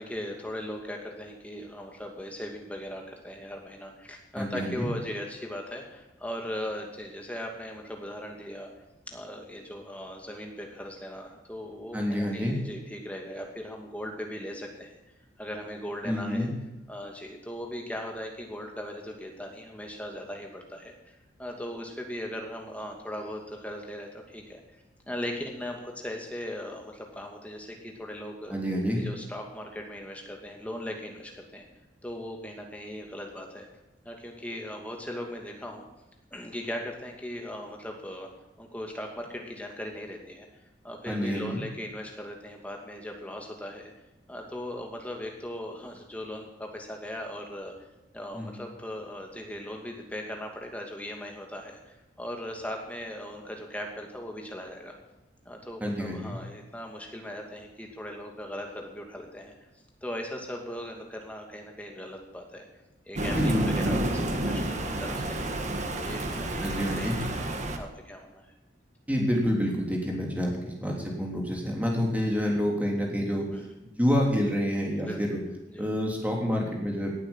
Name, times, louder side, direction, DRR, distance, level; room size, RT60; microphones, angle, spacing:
voice 1, 0.0-8.7 9.1-14.9 15.4-16.5 16.9-24.6 25.1-28.5 29.0-31.6 32.0-33.7 34.0-35.9 36.3-38.3 38.6-40.5 40.8-43.9 44.3-47.7 48.1-55.0 55.5-59.5 60.0-62.7 63.1-67.5 67.8-68.4 73.5-73.6 75.0-75.2 75.7-75.9, left 1 dB, 10° left, 1 dB, 2.4 m, -39 dB
voice 2, 4.3-4.9 11.9-12.6 16.0-16.5 28.5-29.0 41.1-41.6 48.3-48.6 55.8-56.4 63.4-63.9 66.6-67.2 69.1-73.5 74.0-75.4 75.8-77.1, equal, 10° right, -1 dB, 3.4 m, -28 dB
Thunder, 63.1-67.8, right 1 dB, 40° right, 1.6 m, -30 dB
18.0 x 8.7 x 7.4 m, 0.97 s
head